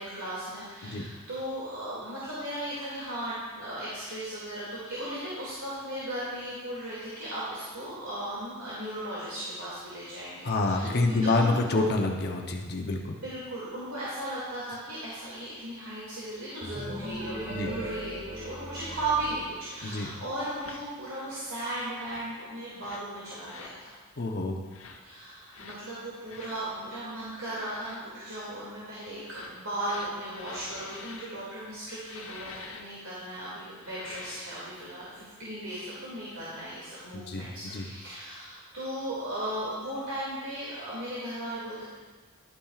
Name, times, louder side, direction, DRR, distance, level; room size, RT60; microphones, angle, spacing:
voice 1, 0.0-11.8 13.2-23.9 25.0-41.8, right 1 dB, 85° right, -9 dB, 2.4 m, -36 dB
voice 2, 10.4-13.2 17.5-17.7 19.8-20.1 24.2-24.6 37.1-37.9, left 2 dB, 50° left, 2 dB, 0.7 m, -27 dB
sound 1, 16.6-20.3, right 1 dB, 50° right, 2.7 m, -39 dB
sound 2, 20.0-20.2 20.6-20.8 21.9-22.3 22.8-23.1 23.4-23.8 24.7-25.0 25.5-25.8 26.3-26.6 27.5-28.0 29.1-31.3 32.0-32.8 33.7-34.5, left 4 dB, 80° left, 0.9 m, -46 dB
11.5 x 8.6 x 2.4 m, 1.4 s
head